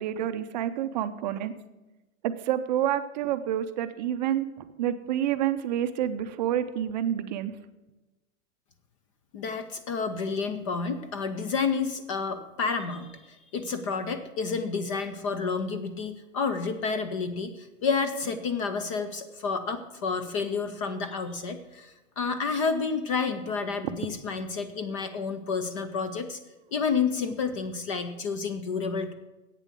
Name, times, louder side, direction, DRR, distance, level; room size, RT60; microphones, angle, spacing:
voice 1, 0.0-1.5 2.2-7.5, right 11 dB, 35° right, 10 dB, 0.5 m, -28 dB
voice 2, 9.3-26.4 26.7-29.1, left 5 dB, 25° left, 10 dB, 0.4 m, -30 dB
8.3 x 7.3 x 8.2 m, 1.1 s
supercardioid pair, 155°, 39 cm